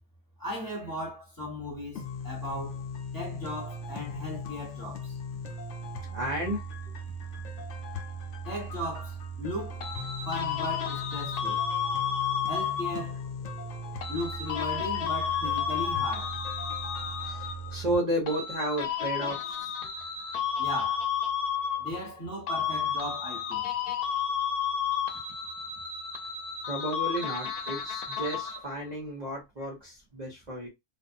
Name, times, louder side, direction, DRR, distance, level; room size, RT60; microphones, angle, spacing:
voice 1, 0.4-2.8 3.1-5.2 8.4-9.8 10.2-11.6 12.5-13.2 14.1-16.4 20.6-21.1 21.8-23.6, left 1 dB, 15° left, 1.0 m, -37 dB
sound 1, 2.0-18.0, left 1 dB, 65° left, 0.9 m, -38 dB
voice 2, 6.1-6.6 17.2-19.8 26.7-30.7, right 1 dB, 40° right, 0.6 m, -32 dB
sound 2, 9.8-13.2 14.0-17.8 18.3-22.2 22.5-28.8, left 8 dB, 85° left, 1.2 m, -32 dB
2.5 x 2.4 x 2.5 m
omnidirectional pair, 1.6 m